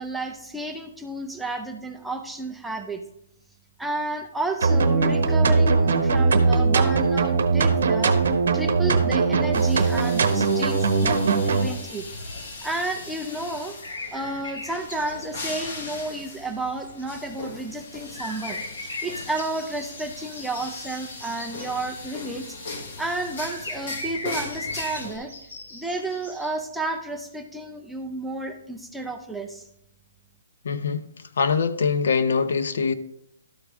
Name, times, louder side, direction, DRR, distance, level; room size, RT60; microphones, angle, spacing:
voice 1, 0.0-3.0 3.8-8.2 8.5-12.0 12.6-13.8 14.1-22.6 23.0-25.3 25.7-29.7, right 2 dB, ahead, 0.4 m, -32 dB
sound 1, 4.6-11.7, right 4 dB, 60° right, 1.0 m, -20 dB
sound 2, 9.5-25.2, left 3 dB, 35° left, 1.1 m, -39 dB
sound 3, 13.8-15.3 15.8-15.9 16.8-17.2 18.0-22.0 23.3-26.5, left 1 dB, 75° left, 3.8 m, -38 dB
voice 2, 30.6-31.1 31.4-32.9, left 5 dB, 55° left, 0.6 m, -23 dB
12.5 x 4.8 x 3.5 m
hypercardioid pair, 180°, 0 cm